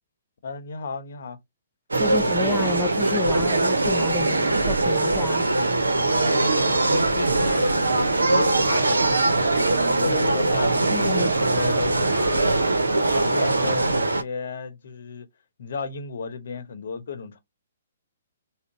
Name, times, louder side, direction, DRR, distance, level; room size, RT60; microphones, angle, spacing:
voice 1, 0.4-1.4 2.1-2.5 6.2-6.9 7.1-9.3 10.0-12.6 13.1-15.3 15.6-17.4, left 4 dB, 60° left, 0.8 m, -33 dB
sound 1, 1.9-14.2, right 2 dB, 80° right, 0.6 m, -21 dB
voice 2, 2.0-5.5 10.9-11.3, left 3 dB, 10° left, 0.3 m, -31 dB
3.7 x 2.1 x 3.8 m
figure-of-eight pair, 125°, 0 cm